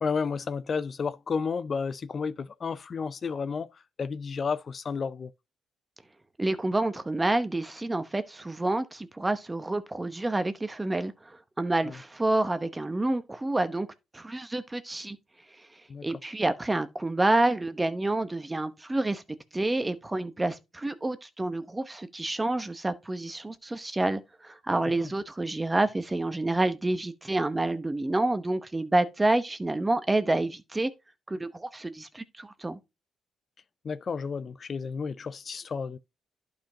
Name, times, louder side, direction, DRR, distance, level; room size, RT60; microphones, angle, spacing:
voice 1, 0.0-5.3 11.8-12.0 15.9-16.1 25.0-25.1 33.8-36.0, left 5 dB, 45° left, 0.4 m, -32 dB
voice 2, 6.4-13.9 14.1-15.2 16.0-19.2 19.5-30.9 31.3-32.8, right 2 dB, 15° right, 0.9 m, -28 dB
11.5 x 5.2 x 2.8 m
cardioid pair, 90°, 0 cm